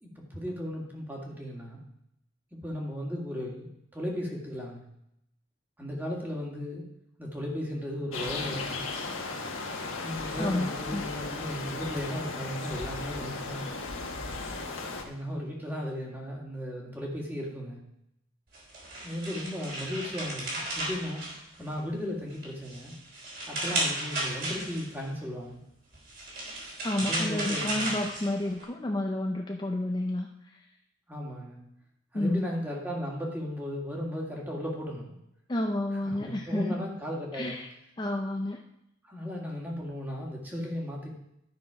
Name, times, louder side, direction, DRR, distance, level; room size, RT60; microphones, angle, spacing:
voice 1, 0.0-1.8 2.6-4.8 5.8-6.8 7.2-8.8 10.0-13.6 15.0-17.8 19.0-21.3 21.6-22.9 23.5-25.6 27.0-27.9 31.1-31.6 32.1-35.1 35.9-37.6 39.0-41.1, equal, 10° right, -2 dB, 2.0 m, -36 dB
sound 1, 8.1-15.0, left 3 dB, 90° left, 1.4 m, -36 dB
voice 2, 10.4-11.1 26.8-30.6 32.1-32.4 35.5-36.9 37.3-37.7 38.0-38.6, left 1 dB, 20° left, 2 dB, 0.5 m, -30 dB
sound 2, 18.5-21.9 22.3-25.0 25.9-28.6, right 1 dB, 50° right, 3.4 m, -34 dB
12.0 x 6.1 x 4.9 m, 0.80 s
head